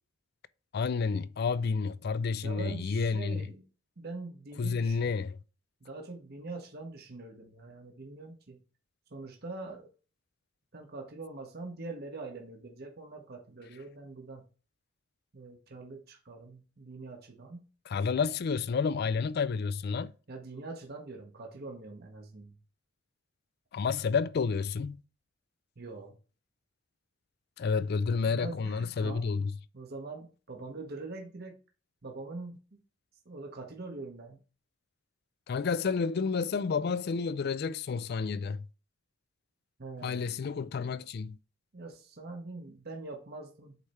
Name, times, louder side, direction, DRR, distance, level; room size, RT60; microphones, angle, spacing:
voice 1, 0.7-3.5 4.6-5.4 17.9-20.1 23.7-25.0 27.6-29.5 35.5-38.7 40.0-41.4, left 5 dB, 55° left, 0.4 m, -30 dB
voice 2, 2.4-3.6 4.0-5.1 5.8-8.6 9.1-9.9 10.7-14.4 15.3-17.6 20.3-22.5 25.8-26.1 28.3-29.3 29.7-31.6 32.0-32.8 33.2-34.4 39.8-40.4 41.7-43.8, right 3 dB, 55° right, 1.0 m, -43 dB
8.2 x 3.3 x 4.2 m
head